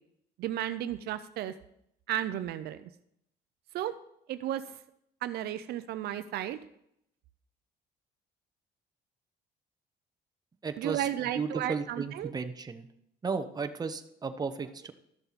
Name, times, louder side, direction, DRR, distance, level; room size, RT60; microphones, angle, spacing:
voice 1, 0.4-1.5 2.1-2.8 3.7-3.9 4.3-4.6 5.2-6.6 10.8-12.3, right 12 dB, 70° right, 12 dB, 0.6 m, -33 dB
voice 2, 10.6-11.1 11.3-12.9 13.2-14.9, right 5 dB, 25° right, 8 dB, 0.8 m, -34 dB
13.0 x 6.8 x 4.1 m, 0.75 s
cardioid pair, 110°, 17 cm